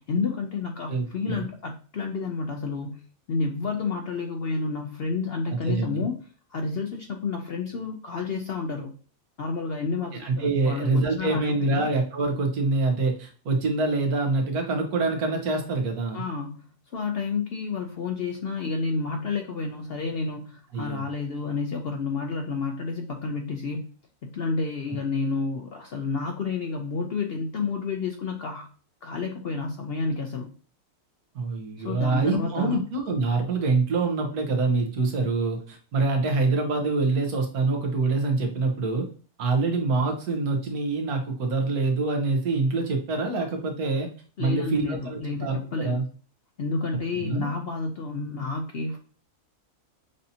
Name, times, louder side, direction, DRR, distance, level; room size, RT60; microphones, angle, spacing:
voice 1, 0.0-3.0 3.3-6.2 6.5-8.9 9.4-11.9 16.1-16.6 16.9-23.9 24.2-28.7 29.0-30.5 31.8-32.8 44.4-45.9 46.6-49.0, left 4 dB, 65° left, 4 dB, 0.6 m, -30 dB
voice 2, 0.9-1.5 5.5-6.0 10.2-16.2 20.7-21.1 31.3-39.1 39.4-44.1 44.4-46.0 47.1-47.5, right 3 dB, 90° right, 3 dB, 1.5 m, -25 dB
6.4 x 2.7 x 2.7 m, 0.40 s
omnidirectional pair, 1.5 m